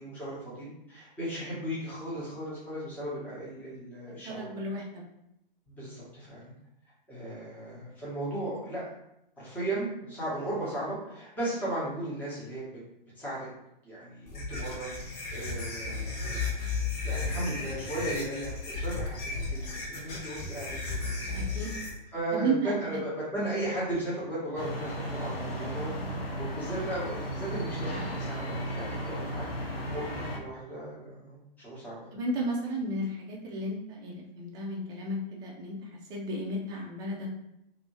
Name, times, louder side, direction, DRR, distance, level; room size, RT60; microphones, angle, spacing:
voice 1, 0.0-4.5 5.7-6.5 7.1-8.8 9.4-12.6 13.2-13.5 13.8-16.4 17.0-21.3 22.1-25.9 26.4-32.1, right 1 dB, 5° left, -9 dB, 1.0 m, -36 dB
voice 2, 4.2-5.0 21.3-21.7 22.3-23.0 26.7-26.8 32.1-37.4, right 1 dB, 15° right, -2 dB, 0.4 m, -33 dB
sound 1, 14.3-21.9, left 4 dB, 40° left, 0.9 m, -34 dB
sound 2, 24.6-30.4, equal, 85° left, 0.7 m, -35 dB
2.7 x 2.6 x 3.1 m, 0.83 s
figure-of-eight pair, 115°, 29 cm